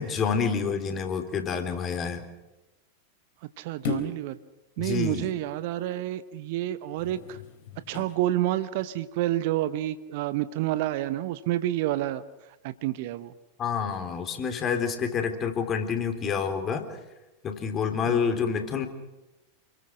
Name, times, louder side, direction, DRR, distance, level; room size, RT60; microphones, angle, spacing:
voice 1, 0.0-2.2 4.8-5.3 13.6-16.8 17.4-18.9, left 6 dB, 25° left, 6 dB, 3.8 m, -28 dB
voice 2, 3.6-4.4 4.8-7.4 7.9-12.2 12.6-13.3 18.1-18.4, right 14 dB, 50° right, 14 dB, 1.1 m, -29 dB
sound 1, 3.8-4.3 6.9-8.2 8.8-8.9, left 7 dB, 55° left, 3.6 m, -36 dB
29.5 x 22.0 x 6.3 m, 1.0 s
figure-of-eight pair, 90°, 0 cm